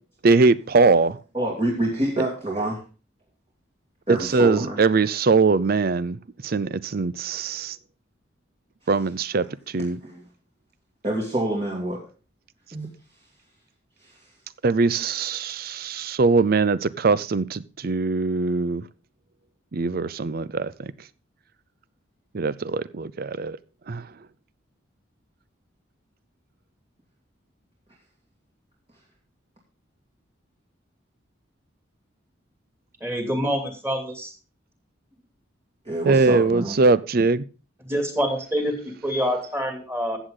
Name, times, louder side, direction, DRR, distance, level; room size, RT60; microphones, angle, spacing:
voice 1, 0.2-1.2 4.3-6.2 6.4-7.7 8.9-9.4 9.7-10.0 14.6-18.8 19.7-20.9 22.3-23.6 23.9-24.0 36.1-37.4, right 3 dB, 50° right, 0.5 m, -21 dB
voice 2, 1.3-2.8 4.1-4.8 9.8-10.2 11.0-12.0 12.7-12.9 14.0-14.2 35.8-36.8, right 1 dB, 30° right, 2.4 m, -27 dB
voice 3, 33.0-34.3 37.8-40.2, equal, 15° right, 2.7 m, -26 dB
14.0 x 8.1 x 3.8 m
head